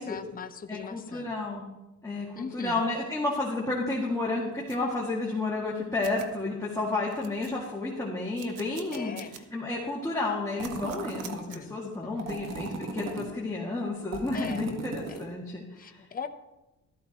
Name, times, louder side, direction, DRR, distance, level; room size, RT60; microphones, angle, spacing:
voice 1, 0.0-1.3 2.3-2.8 8.9-9.3 11.2-11.7 12.0-12.4 14.3-14.7 15.1-15.2 15.8-16.3, left 6 dB, 30° left, 8 dB, 0.9 m, -40 dB
voice 2, 0.7-1.7 2.0-9.2 9.5-16.0, left 2 dB, 10° left, -5 dB, 2.3 m, -31 dB
sound 1, 4.7-4.8 5.7-5.8 6.0-6.3 6.8-6.9 7.1-7.8 8.4-9.4 9.8-9.9 10.6-11.6, right 9 dB, 80° right, 1.1 m, -46 dB
sound 2, 10.6-11.5 12.2-13.3 14.1-15.3, right 4 dB, 60° right, 1.7 m, -37 dB
13.5 x 12.5 x 3.1 m, 1.0 s
cardioid pair, 90°, 30 cm